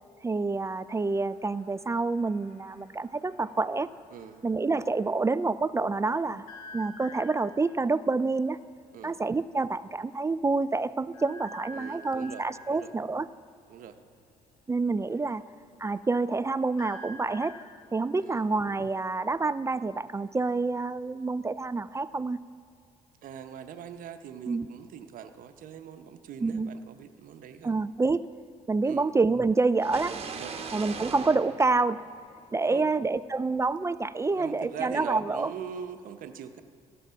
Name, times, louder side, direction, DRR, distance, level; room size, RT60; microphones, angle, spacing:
voice 1, 0.2-3.9 4.4-6.5 6.7-8.6 9.0-13.3 14.7-15.4 15.8-17.6 17.9-22.4 24.5-24.7 26.4-26.7 27.6-28.2 28.7-30.2 30.7-32.0 32.5-35.5, right 3 dB, 20° right, 15 dB, 0.3 m, -27 dB
sound 1, 0.8-5.2 6.5-7.7 8.9-9.0 9.3-9.5 9.9-10.0 11.1-12.7 14.9-19.0, left 1 dB, 85° left, 1.4 m, -49 dB
voice 2, 4.1-4.4 8.9-9.2 11.7-12.9 13.7-14.0 18.2-18.4 23.2-27.7 28.8-29.1 30.3-30.7 32.7-32.9 34.4-36.6, right 8 dB, 65° right, 8 dB, 0.9 m, -42 dB
sound 2, 29.8-32.6, right 5 dB, 40° right, 1.2 m, -39 dB
16.5 x 7.2 x 5.7 m, 2.5 s
supercardioid pair, 70°, 15 cm